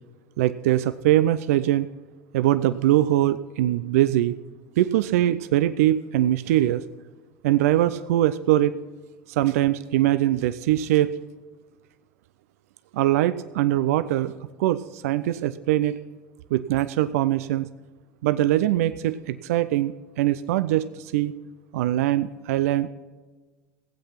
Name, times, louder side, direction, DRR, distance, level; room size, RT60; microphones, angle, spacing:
voice 1, 0.4-1.9 2.3-4.3 4.8-6.8 7.4-8.7 9.3-11.1 12.9-14.3 14.6-16.0 16.5-17.7 18.2-21.3 21.7-22.9, right 13 dB, 80° right, 13 dB, 0.4 m, -22 dB
16.0 x 8.2 x 5.8 m, 1.3 s
hypercardioid pair, 85°, 8 cm